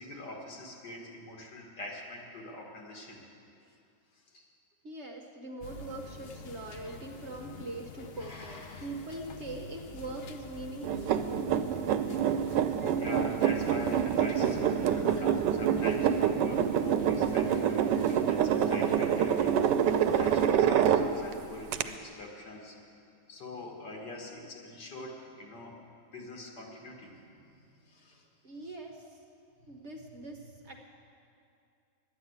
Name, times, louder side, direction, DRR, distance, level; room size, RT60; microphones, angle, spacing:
voice 1, 0.0-3.2 4.1-4.5 6.8-7.0 8.2-8.9 12.3-19.8 20.1-22.8 23.3-25.8 26.1-28.3 28.6-28.7 29.6-30.0, left 2 dB, 80° left, 0 dB, 2.2 m, -44 dB
voice 2, 4.8-11.2 28.4-29.2 29.7-30.7, right 2 dB, 50° right, 2 dB, 0.9 m, -42 dB
sound 1, 5.6-20.5, left 4 dB, 60° left, 0.6 m, -46 dB
sound 2, 10.8-21.3 21.7-21.8, right 8 dB, 85° right, 1.2 m, -26 dB
11.5 x 9.3 x 8.0 m, 2.5 s
omnidirectional pair, 1.8 m